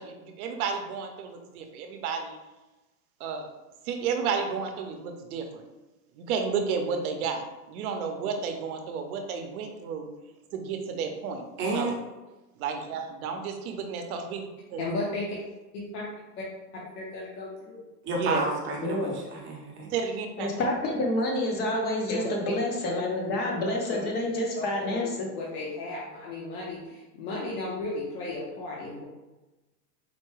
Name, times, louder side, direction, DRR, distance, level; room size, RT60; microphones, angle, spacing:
voice 1, 0.0-2.4 3.2-3.5 3.8-5.7 6.2-7.4 7.7-10.1 10.5-11.4 11.7-12.0 12.6-14.4 14.7-14.8 18.2-18.5 19.9-20.7, right 6 dB, 60° right, 5 dB, 0.7 m, -32 dB
voice 2, 11.6-12.0 18.0-19.9, right 2 dB, 25° right, -1 dB, 0.6 m, -30 dB
voice 3, 14.8-15.3 15.7-16.0 17.0-17.8 22.1-22.2 23.9-24.0 24.6-25.1 25.3-29.0, left 2 dB, 65° left, -5 dB, 1.0 m, -35 dB
voice 4, 18.8-19.1 20.4-25.3, left 1 dB, 20° left, 0 dB, 0.5 m, -28 dB
4.3 x 2.2 x 3.1 m, 1.1 s
supercardioid pair, 135°, 50 cm